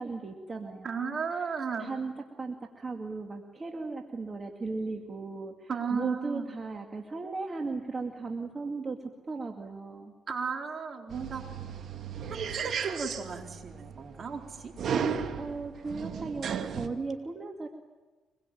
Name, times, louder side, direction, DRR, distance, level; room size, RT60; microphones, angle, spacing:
voice 1, 0.0-2.1 2.4-9.0 9.3-10.1 15.3-17.7, right 3 dB, 30° right, 3 dB, 2.3 m, -37 dB
voice 2, 0.8-1.9 5.7-6.5 10.3-11.5 12.3-14.7, right 5 dB, 45° right, 2 dB, 4.3 m, -34 dB
sound 1, 11.1-16.9, right 7 dB, 65° right, 2.1 m, -35 dB
24.5 x 22.5 x 9.2 m, 1.2 s
cardioid pair, 90°, 0 cm